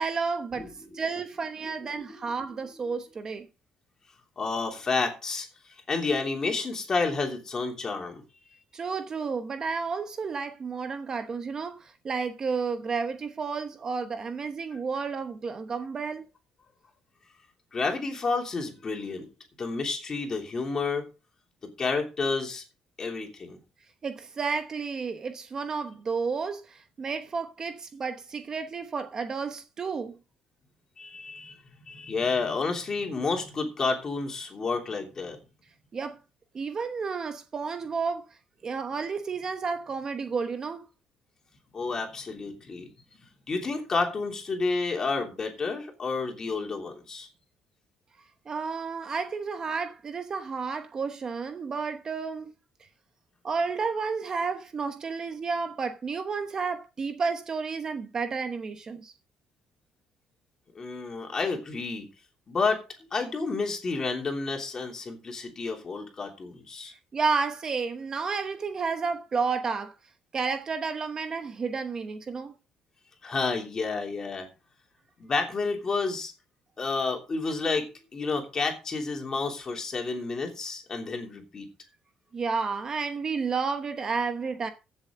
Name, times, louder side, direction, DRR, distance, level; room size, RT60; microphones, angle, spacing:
voice 1, 0.0-0.7 0.9-3.5 8.7-16.2 24.0-30.1 35.9-36.2 36.5-38.2 38.6-40.9 48.5-52.5 53.4-59.1 67.1-69.9 70.3-72.5 82.3-84.7, right 5 dB, 30° right, 1.0 m, -31 dB
voice 2, 0.6-1.0 1.6-2.3 4.4-5.5 5.9-8.2 17.7-19.3 19.6-21.1 21.6-22.6 23.0-23.6 31.0-31.6 31.9-35.4 41.7-42.9 43.5-47.3 60.7-62.1 62.5-66.9 73.2-74.5 75.2-76.3 76.8-81.7, left 4 dB, 30° left, 3.1 m, -30 dB
15.5 x 7.4 x 3.8 m
cardioid pair, 140°, 2 cm